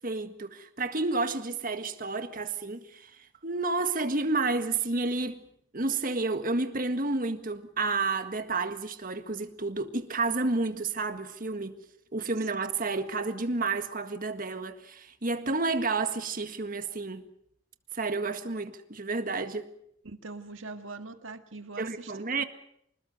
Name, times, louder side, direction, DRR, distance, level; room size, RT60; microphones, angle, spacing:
voice 1, 0.0-5.5 5.7-11.8 12.1-17.2 17.9-19.7 21.8-22.4, right 3 dB, 45° right, 1.7 m, -30 dB
voice 2, 20.0-22.1 22.4-22.5, right 3 dB, 75° right, 1.9 m, -42 dB
26.0 x 20.0 x 6.7 m
head